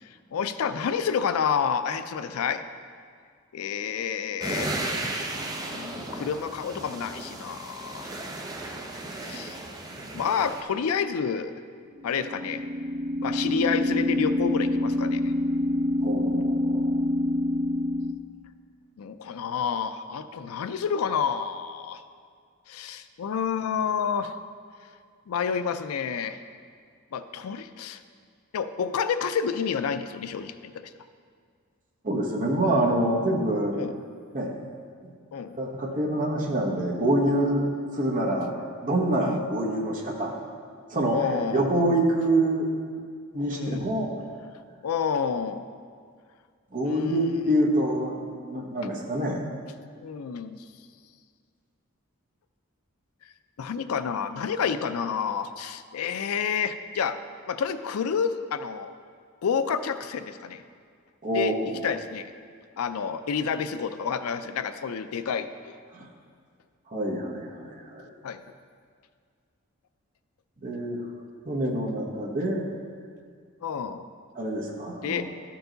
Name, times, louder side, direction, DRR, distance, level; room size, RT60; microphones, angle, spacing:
voice 1, 0.0-2.6 3.5-4.8 5.6-8.1 9.2-9.6 10.1-11.5 12.0-12.6 13.2-15.3 19.0-22.0 22.7-24.3 25.3-26.4 27.1-28.0 28.5-30.9 33.7-33.9 35.3-35.6 39.2-39.4 41.1-41.7 43.5-43.9 44.8-45.7 46.8-47.4 50.0-50.6 53.6-57.2 57.5-58.9 59.4-60.6 61.3-61.5 61.8-62.3 62.8-65.8 68.2-68.4 73.6-74.1 75.0-75.2, left 6 dB, 85° left, 11 dB, 0.4 m, -29 dB
sound 1, 4.4-10.6, right 2 dB, 20° right, 0.6 m, -35 dB
sound 2, 5.3-5.9 12.0-18.1, left 1 dB, 90° right, 0.6 m, -26 dB
voice 2, 16.0-17.0 32.0-33.7 34.3-34.5 35.0-35.1 35.6-37.6 37.9-38.5 38.8-40.3 40.9-42.7 43.3-44.1 46.7-48.1 48.4-49.5 61.2-61.8 65.9-66.1 66.9-68.1 70.6-71.0 71.4-72.7 74.3-75.2, right 1 dB, 40° right, 0 dB, 1.0 m, -26 dB
12.0 x 4.6 x 3.9 m, 2.1 s
head